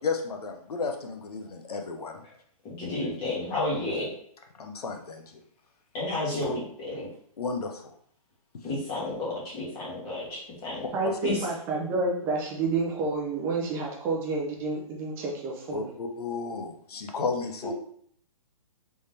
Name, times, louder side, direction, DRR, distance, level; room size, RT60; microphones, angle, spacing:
voice 1, 0.0-2.2 4.6-5.2 7.4-7.9 11.0-11.2 15.7-17.7, left 4 dB, 90° left, 4 dB, 0.8 m, -33 dB
voice 2, 2.6-4.1 5.9-7.1 8.6-10.9 11.2-11.5, left 2 dB, 20° left, -6 dB, 1.4 m, -31 dB
voice 3, 10.9-15.9, right 3 dB, 15° right, -1 dB, 0.4 m, -29 dB
3.5 x 3.2 x 2.7 m, 0.63 s
hypercardioid pair, 160°, 19 cm